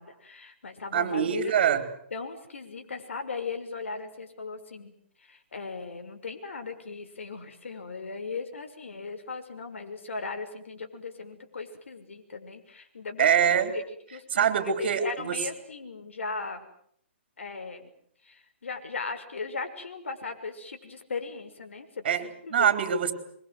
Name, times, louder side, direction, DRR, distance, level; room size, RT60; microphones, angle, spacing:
voice 1, 0.0-1.5 2.1-13.8 14.1-16.7 17.4-17.9 18.2-22.7, left 4 dB, 85° left, 7 dB, 6.2 m, -38 dB
voice 2, 0.9-1.9 13.2-13.7 14.3-15.4 22.0-22.2 22.5-23.1, right 8 dB, 55° right, 9 dB, 4.6 m, -24 dB
27.0 x 24.0 x 7.9 m, 0.67 s
hypercardioid pair, 155°, 7 cm